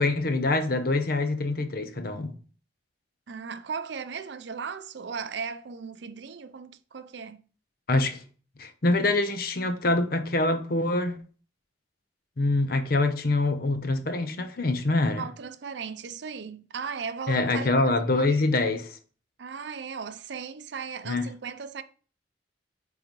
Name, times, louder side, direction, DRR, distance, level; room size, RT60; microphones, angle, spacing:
voice 1, 0.0-2.3 7.9-8.2 8.6-11.2 12.4-15.3 17.3-19.0 21.1-21.3, left 2 dB, 55° left, 0.7 m, -25 dB
voice 2, 3.3-7.4 15.1-18.4 19.4-21.8, right 6 dB, 75° right, 0.5 m, -37 dB
8.8 x 3.8 x 3.0 m
head